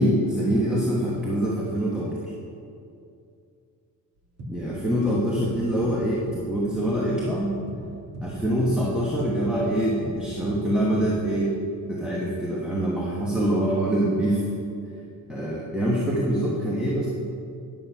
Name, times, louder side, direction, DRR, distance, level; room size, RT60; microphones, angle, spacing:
voice 1, 0.0-2.3 4.5-7.5 8.2-11.5 11.9-14.4 15.3-17.1, right 1 dB, 5° right, -6 dB, 1.1 m, -24 dB
sound 1, 4.2-7.4 7.7-7.9 8.1-11.2, equal, 50° right, 2.3 m, -37 dB
10.5 x 7.4 x 5.6 m, 2.5 s
cardioid pair, 170°, 33 cm